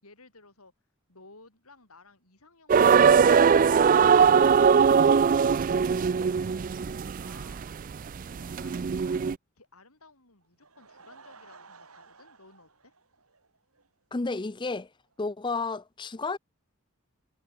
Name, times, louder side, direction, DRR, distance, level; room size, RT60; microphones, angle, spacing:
voice 1, 0.0-0.7 1.1-7.7 8.3-9.2 9.5-13.0, left 3 dB, 80° left, 7.4 m, -56 dB
sound 1, 2.7-9.3, right 6 dB, 40° right, 0.3 m, -21 dB
Laughter / Crowd, 10.4-13.9 14.2-14.3 14.8-14.9 15.1-15.2, right 4 dB, 80° right, 4.4 m, -54 dB
voice 2, 14.1-14.9 15.2-16.4, left 3 dB, 20° left, 0.5 m, -31 dB
head